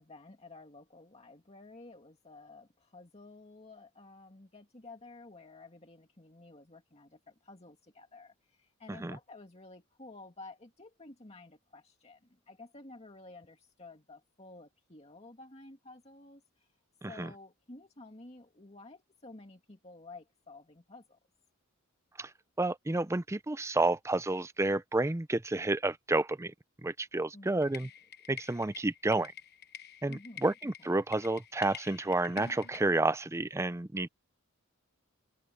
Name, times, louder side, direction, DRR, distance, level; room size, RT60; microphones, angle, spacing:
voice 1, 0.0-16.7 17.1-21.2 27.3-27.9 30.1-30.7, left 2 dB, 30° left, 2.2 m, -52 dB
voice 2, 22.6-26.5 26.8-27.9 28.3-29.3 30.0-34.1, right 2 dB, 15° right, 0.5 m, -30 dB
sound 1, 27.6-32.8, left 8 dB, 50° left, 1.2 m, -48 dB
head